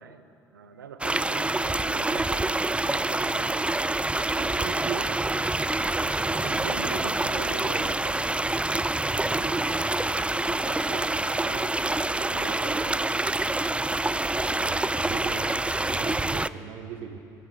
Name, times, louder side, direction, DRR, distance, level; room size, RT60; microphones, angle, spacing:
voice 1, 0.0-3.7 5.9-8.3 9.1-13.4, right 6 dB, 80° right, 9 dB, 1.1 m, -43 dB
sound 1, 1.0-16.5, right 2 dB, 10° right, 0.5 m, -26 dB
voice 2, 4.3-5.2 14.5-17.2, right 7 dB, 60° right, 5 dB, 1.4 m, -39 dB
sound 2, 8.2-11.3, left 2 dB, 35° left, 6.5 m, -50 dB
23.5 x 14.0 x 8.6 m, 2.7 s
figure-of-eight pair, 50°, 11 cm